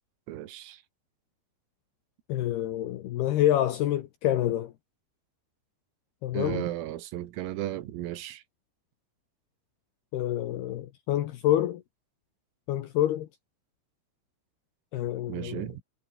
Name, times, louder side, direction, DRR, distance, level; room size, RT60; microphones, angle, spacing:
voice 1, 0.3-0.8 6.3-8.4 15.3-15.8, right 14 dB, 85° right, 4.4 m, -35 dB
voice 2, 2.3-4.7 6.2-6.7 10.1-11.8 12.7-13.3 14.9-15.7, left 12 dB, 75° left, 2.5 m, -27 dB
omnidirectional pair, 6.0 m